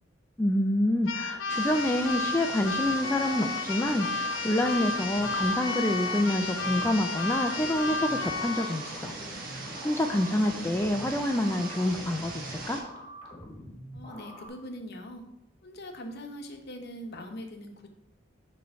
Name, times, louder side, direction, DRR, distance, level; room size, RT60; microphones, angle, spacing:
voice 1, 0.4-9.1 9.8-12.8, left 1 dB, 10° left, 3 dB, 0.4 m, -27 dB
Keyboard (musical), 1.0-8.8, left 4 dB, 85° left, 0.5 m, -32 dB
sound 1, 1.5-12.8, right 2 dB, 50° right, 1.2 m, -40 dB
sound 2, 4.5-14.5, equal, 30° left, 1.3 m, -45 dB
voice 2, 13.9-15.2 15.6-17.9, equal, 55° left, 4 dB, 0.9 m, -42 dB
6.6 x 3.2 x 5.6 m, 0.82 s
head